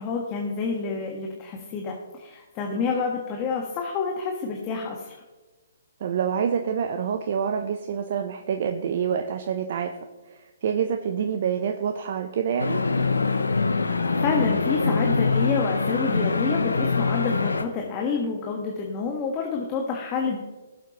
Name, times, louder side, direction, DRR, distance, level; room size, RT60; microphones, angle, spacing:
voice 1, 0.0-5.2 13.8-20.4, left 5 dB, 30° left, 0 dB, 1.4 m, -28 dB
voice 2, 6.0-9.9 10.3-12.8, right 7 dB, 50° right, 5 dB, 0.7 m, -27 dB
sound 1, 12.6-17.6, left 4 dB, 85° left, 0.8 m, -24 dB
17.0 x 7.4 x 3.0 m, 1.2 s
figure-of-eight pair, 130°, 0 cm